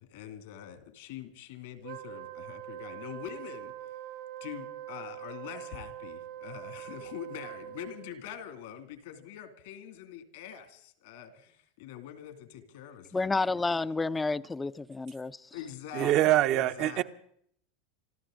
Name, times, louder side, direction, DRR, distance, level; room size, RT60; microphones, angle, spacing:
voice 1, 0.0-3.7 4.4-13.4 15.5-17.0, left 10 dB, 70° left, 2.6 m, -44 dB
Wind instrument woodwind instrument, 1.8-8.1, right 12 dB, 70° right, 1.8 m, -43 dB
voice 2, 13.1-15.5 16.0-16.1, left 3 dB, 15° left, 0.6 m, -30 dB
voice 3, 15.9-17.0, right 14 dB, 50° right, 1.0 m, -24 dB
26.5 x 14.0 x 3.9 m
hypercardioid pair, 90°, 0 cm